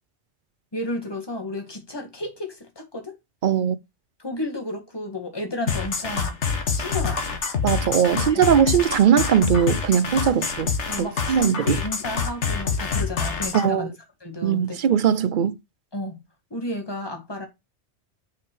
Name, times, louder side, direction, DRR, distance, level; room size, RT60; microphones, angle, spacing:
voice 1, 0.7-3.2 4.2-6.4 6.8-7.4 8.1-8.5 10.9-13.9 14.2-14.8 15.9-16.2 16.5-17.5, left 1 dB, 20° left, 1.9 m, -32 dB
voice 2, 3.4-3.8 7.6-10.7 11.0-11.8 13.5-13.9 14.4-15.6, right 8 dB, 55° right, 0.7 m, -20 dB
sound 1, 5.7-13.7, left 5 dB, 80° left, 1.5 m, -26 dB
5.9 x 5.2 x 4.5 m
omnidirectional pair, 1.2 m